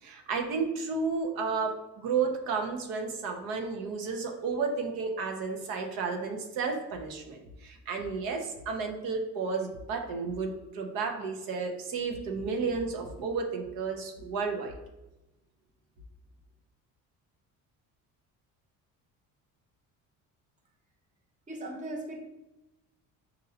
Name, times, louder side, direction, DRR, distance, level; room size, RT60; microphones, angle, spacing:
voice 1, 0.0-14.7, right 4 dB, 85° right, 3 dB, 0.8 m, -32 dB
voice 2, 21.5-22.2, right 1 dB, 20° right, 1 dB, 0.8 m, -38 dB
6.4 x 2.7 x 2.8 m, 0.98 s
cardioid pair, 135°, 34 cm